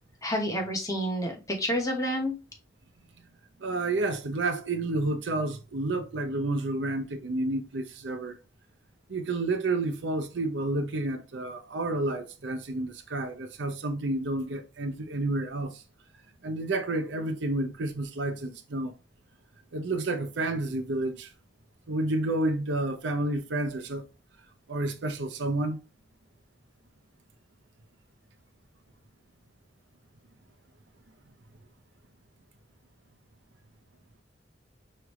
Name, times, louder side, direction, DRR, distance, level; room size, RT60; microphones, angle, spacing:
voice 1, 0.2-2.3, equal, 20° left, 1.0 m, -29 dB
voice 2, 3.6-8.4 9.1-15.8 16.4-18.9 19.7-21.3 21.9-24.1 24.7-25.8, right 2 dB, 75° right, 0.6 m, -30 dB
4.9 x 3.2 x 3.1 m
head